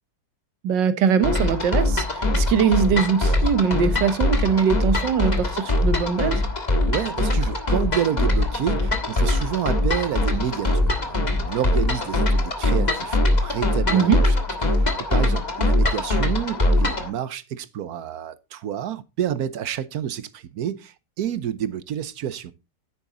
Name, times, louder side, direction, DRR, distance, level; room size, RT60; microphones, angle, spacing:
voice 1, 0.6-6.4 13.9-14.2, right 7 dB, 90° right, 1.7 m, -21 dB
sound 1, 1.2-17.1, left 1 dB, 25° left, 1.5 m, -22 dB
voice 2, 6.9-14.3 14.8-22.5, right 10 dB, 65° right, 1.2 m, -29 dB
10.0 x 8.9 x 3.9 m
omnidirectional pair, 1.9 m